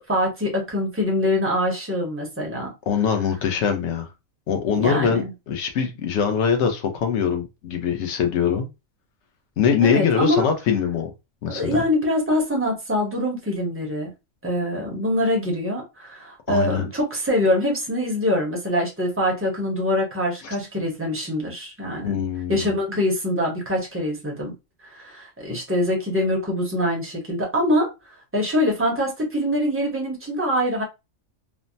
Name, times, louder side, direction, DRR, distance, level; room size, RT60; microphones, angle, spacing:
voice 1, 0.0-2.7 4.7-5.3 9.8-10.5 11.5-14.1 14.4-22.2 22.5-24.5 24.9-27.9 28.3-30.8, left 1 dB, 15° right, 0.6 m, -24 dB
voice 2, 2.9-4.1 4.5-8.7 9.6-11.1 11.4-11.8 16.5-16.9 22.0-22.7, left 7 dB, 65° left, 0.9 m, -23 dB
3.2 x 2.0 x 2.6 m
omnidirectional pair, 1.4 m